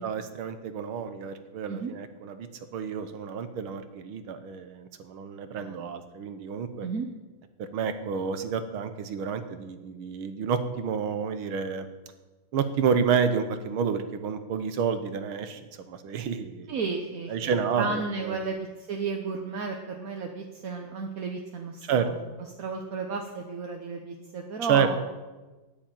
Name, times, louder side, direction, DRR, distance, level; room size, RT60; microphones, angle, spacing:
voice 1, 0.0-6.9 7.6-11.9 12.5-15.6 15.9-16.7 17.3-18.4 21.9-22.1 24.7-24.9, right 6 dB, 75° right, 10 dB, 1.9 m, -29 dB
voice 2, 16.7-25.0, right 4 dB, 50° right, 3 dB, 1.2 m, -33 dB
10.0 x 9.8 x 9.0 m, 1.2 s
omnidirectional pair, 2.3 m